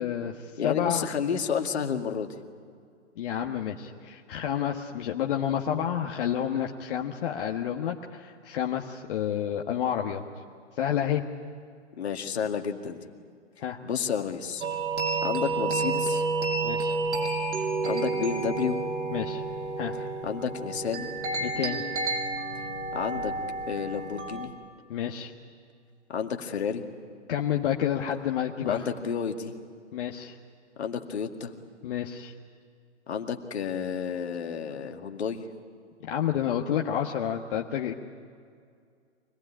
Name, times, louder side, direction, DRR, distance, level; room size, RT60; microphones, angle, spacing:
voice 1, 0.0-1.0 3.2-10.2 10.7-11.2 13.6-13.8 16.6-17.0 19.1-19.4 19.8-20.0 21.4-21.8 24.9-25.3 27.3-28.8 29.9-30.4 31.8-32.3 36.1-37.9, left 9 dB, 50° left, 1 dB, 1.5 m, -29 dB
voice 2, 0.6-2.3 12.0-13.1 13.8-14.6 15.2-16.2 17.9-18.8 20.2-21.1 22.9-23.3 23.7-24.5 26.1-26.8 28.6-29.5 30.8-31.5 33.1-35.5, left 7 dB, 65° left, 4 dB, 2.2 m, -31 dB
sound 1, 14.6-24.5, right 3 dB, 75° right, 6.3 m, -30 dB
25.0 x 19.0 x 10.0 m, 2.2 s
figure-of-eight pair, 120°, 35 cm